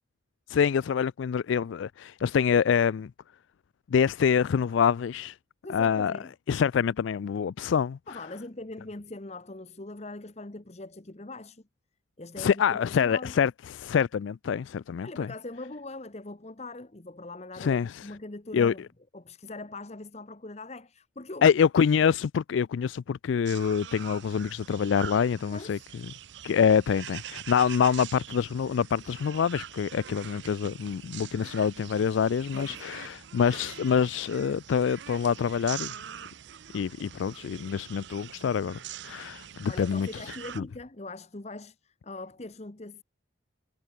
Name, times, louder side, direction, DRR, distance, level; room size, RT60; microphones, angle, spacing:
voice 1, 0.5-3.1 3.9-5.4 5.7-6.1 6.5-8.0 12.4-15.3 17.5-18.1 18.5-18.7 21.4-25.8 26.4-36.0 36.7-40.1 40.6-40.7, left 7 dB, 75° left, 0.3 m, -26 dB
voice 2, 5.6-6.3 8.1-11.6 12.2-13.3 15.0-18.8 19.1-21.4 25.5-25.9 32.5-32.8 39.7-43.0, left 2 dB, 35° left, 1.0 m, -41 dB
sound 1, 23.5-40.6, right 10 dB, 65° right, 0.5 m, -44 dB
head